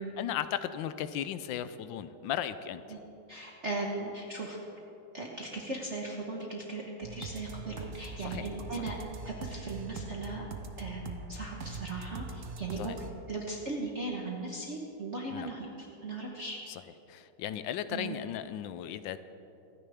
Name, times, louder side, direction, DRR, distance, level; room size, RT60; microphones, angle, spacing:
voice 1, 0.2-2.8 8.2-8.4 8.8-8.9 12.8-13.0 15.3-15.5 16.7-16.8 17.1-19.2, left 10 dB, 75° left, 12 dB, 1.2 m, -36 dB
voice 2, 3.3-4.6 5.1-6.8 7.1-8.9 9.2-10.4 10.8-12.9 13.3-15.7 16.0-16.6 17.9-18.2, right 2 dB, 40° right, -2 dB, 1.2 m, -37 dB
sound 1, 7.0-13.1, right 4 dB, 55° right, 0.9 m, -42 dB
26.0 x 9.9 x 3.5 m, 3.0 s
omnidirectional pair, 2.3 m